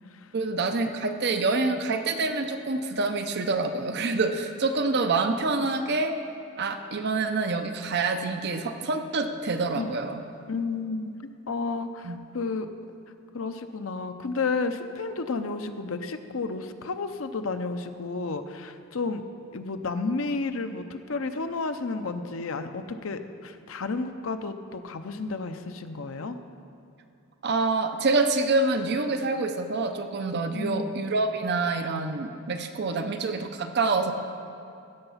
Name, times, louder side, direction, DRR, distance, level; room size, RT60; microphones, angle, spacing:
voice 1, 0.3-6.1 6.6-10.2 12.0-12.2 27.4-34.1, right 3 dB, 55° right, 7 dB, 0.7 m, -26 dB
voice 2, 10.5-12.7 13.3-19.2 19.5-26.4 30.5-30.9, left 3 dB, 70° left, 8 dB, 0.7 m, -32 dB
15.5 x 6.9 x 5.6 m, 2.5 s
head